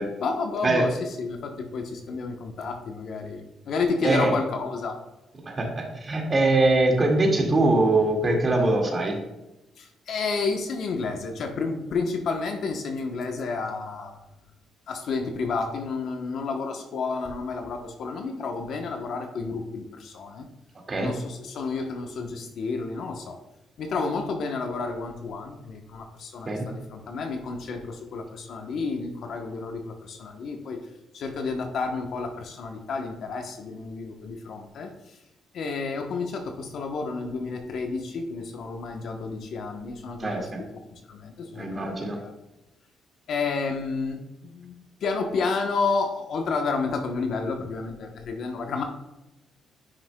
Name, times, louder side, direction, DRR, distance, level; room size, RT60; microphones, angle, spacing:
voice 1, 0.2-5.0 9.8-14.2 14.9-20.5 21.0-23.4 23.8-30.8 31.1-34.9 35.5-40.5 41.1-42.3 43.3-44.7 45.0-48.8, left 4 dB, 65° left, 4 dB, 0.9 m, -30 dB
voice 2, 4.0-4.3 5.5-9.1 20.9-21.1 26.5-26.7 40.2-40.6 41.5-42.2, right 2 dB, 30° right, 1 dB, 1.9 m, -22 dB
9.8 x 6.0 x 2.2 m, 0.96 s
cardioid pair, 90°, 0 cm